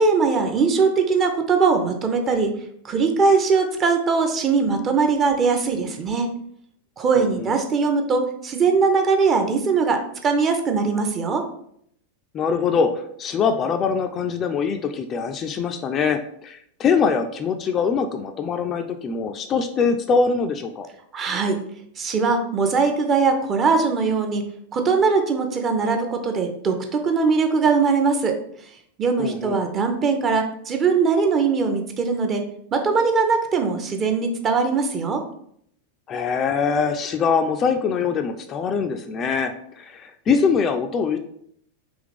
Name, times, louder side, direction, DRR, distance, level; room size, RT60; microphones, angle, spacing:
voice 1, 0.0-2.5 2.8-6.3 7.0-11.4 21.1-21.6 22.0-24.4 24.7-28.4 29.0-32.4 32.7-35.2, right 4 dB, 25° right, 5 dB, 0.6 m, -21 dB
voice 2, 7.2-7.5 12.3-20.9 29.2-29.6 36.1-41.2, left 5 dB, 25° left, 6 dB, 0.3 m, -23 dB
3.5 x 2.9 x 3.6 m, 0.69 s
figure-of-eight pair, 90°, 0 cm